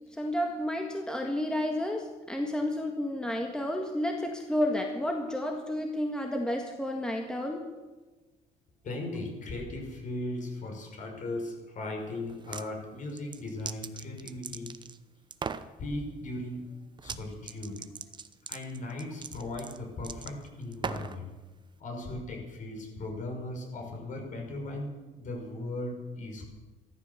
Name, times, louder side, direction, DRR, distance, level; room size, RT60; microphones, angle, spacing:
voice 1, 0.2-7.7, left 1 dB, 5° left, 2 dB, 1.7 m, -31 dB
voice 2, 8.8-14.7 15.8-16.6 17.0-17.9 18.5-21.3 21.8-26.6, left 2 dB, 50° left, 2 dB, 5.7 m, -37 dB
sound 1, 12.3-12.7 13.1-15.0 15.3-15.7 17.0-17.2 17.5-21.2, right 5 dB, 25° right, 0.8 m, -39 dB
14.5 x 14.0 x 7.1 m, 1.2 s
cardioid pair, 110°, 17 cm